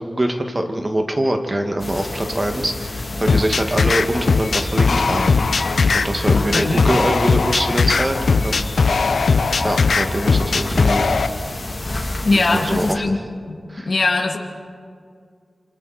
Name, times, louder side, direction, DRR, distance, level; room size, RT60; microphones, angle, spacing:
voice 1, 0.0-5.3 5.7-8.8 9.6-11.1 12.3-13.0 13.7-13.9, right 1 dB, 30° right, 4 dB, 2.2 m, -24 dB
sound 1, 1.8-12.9, left 2 dB, 35° left, 3.3 m, -29 dB
sound 2, 3.3-11.3, left 4 dB, 75° left, 0.9 m, -19 dB
voice 2, 6.3-6.9 12.2-13.2 13.5-13.6 13.8-14.4, left 3 dB, 55° left, 1 dB, 2.8 m, -20 dB
28.0 x 25.0 x 4.5 m, 2.1 s
wide cardioid pair, 65°, 0 cm